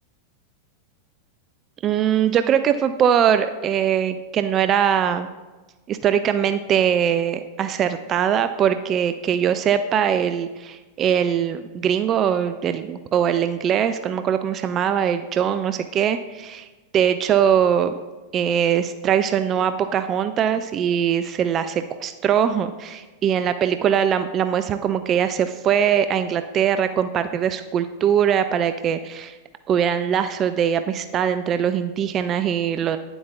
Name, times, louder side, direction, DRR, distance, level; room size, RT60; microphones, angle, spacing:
voice 1, 1.8-5.3 5.9-16.7 16.9-17.9 18.3-29.4 29.7-33.0, right 8 dB, 30° right, 10 dB, 0.3 m, -21 dB
10.0 x 7.8 x 2.4 m, 1.2 s
figure-of-eight pair, 90°, 0 cm